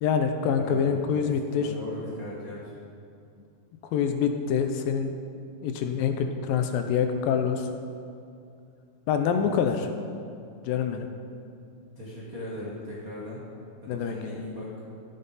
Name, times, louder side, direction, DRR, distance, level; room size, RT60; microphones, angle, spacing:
voice 1, 0.0-1.7 3.9-5.1 5.6-7.7 9.1-9.9 10.6-11.1 13.9-14.2, left 7 dB, 80° left, 6 dB, 2.3 m, -25 dB
voice 2, 0.6-1.2 1.6-2.6 9.3-9.5 11.9-13.4 13.8-14.8, left 1 dB, 60° right, -6 dB, 0.9 m, -39 dB
13.5 x 9.4 x 4.1 m, 2.5 s
omnidirectional pair, 4.3 m